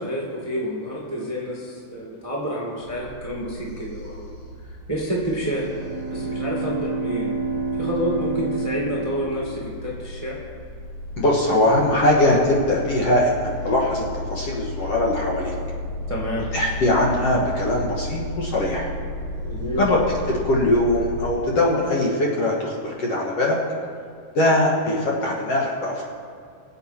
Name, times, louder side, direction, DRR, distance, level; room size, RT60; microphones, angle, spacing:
voice 1, 0.0-4.3 4.6-5.7 6.1-7.3 7.8-10.4 16.1-16.5 19.4-19.8, equal, 15° right, -4 dB, 1.2 m, -29 dB
sound 1, 2.8-21.3, left 1 dB, 80° left, 4.3 m, -34 dB
Bowed string instrument, 5.5-10.1, right 3 dB, 75° right, 0.9 m, -29 dB
voice 2, 11.2-15.5 16.5-18.9 19.8-23.6 24.3-26.0, left 1 dB, 55° left, -2 dB, 2.1 m, -21 dB
23.5 x 8.2 x 4.4 m, 2.2 s
omnidirectional pair, 3.9 m